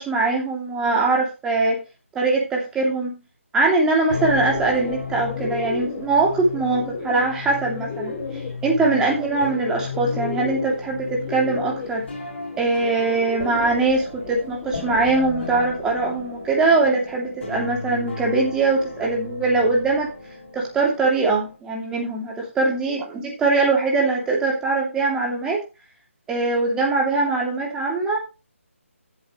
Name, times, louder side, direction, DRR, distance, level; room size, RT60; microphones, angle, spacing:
voice 1, 0.0-1.8 2.1-3.2 3.5-8.1 8.6-12.0 12.6-20.1 20.5-25.6 26.3-28.2, right 3 dB, 10° right, -2 dB, 2.8 m, -22 dB
Bird, 3.8-15.5, left 4 dB, 25° left, 6.1 m, -34 dB
sound 1, 4.1-21.6, left 4 dB, 50° left, 6.2 m, -35 dB
13.0 x 7.8 x 3.2 m, 0.29 s
figure-of-eight pair, 150°, 7 cm